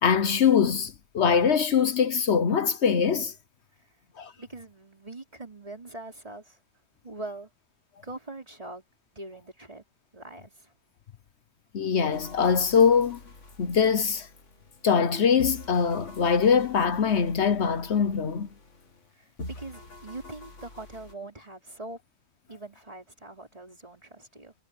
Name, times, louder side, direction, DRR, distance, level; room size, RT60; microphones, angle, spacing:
voice 1, 0.0-3.3 4.2-4.3 11.7-13.2 13.6-14.3 14.8-18.5, left 6 dB, 65° left, 1.2 m, -23 dB
voice 2, 4.4-6.6 7.0-7.5 8.0-8.8 9.1-9.8 10.1-10.7 19.1-22.0 22.5-24.5, right 2 dB, 30° right, 4.0 m, -42 dB
sound 1, 12.1-15.1 15.4-19.1 19.4-21.1, left 1 dB, 90° left, 2.9 m, -46 dB
omnidirectional pair, 1.2 m